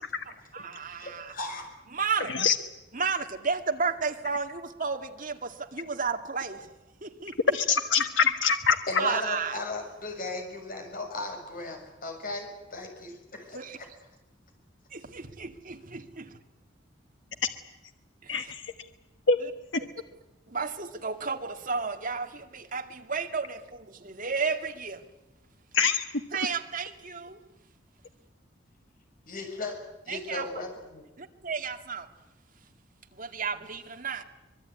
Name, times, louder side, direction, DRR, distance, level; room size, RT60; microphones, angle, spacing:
voice 1, 0.3-1.3 1.9-2.5 2.9-6.7 7.0-7.6 9.0-9.6 13.5-13.8 14.9-16.3 18.2-18.5 19.4-19.5 19.8-19.9 20.5-25.0 26.3-27.4 30.1-30.5 31.2-32.1 33.1-34.2, right 5 dB, 45° right, 2.1 m, -33 dB
voice 2, 0.9-1.7 8.9-13.6 29.2-29.8 30.0-31.1, left 2 dB, 50° left, 6.6 m, -36 dB
voice 3, 7.5-8.8 18.3-18.7 19.3-19.4 19.7-19.8 25.7-26.2, left 6 dB, 90° left, 1.3 m, -25 dB
24.5 x 22.0 x 9.6 m
head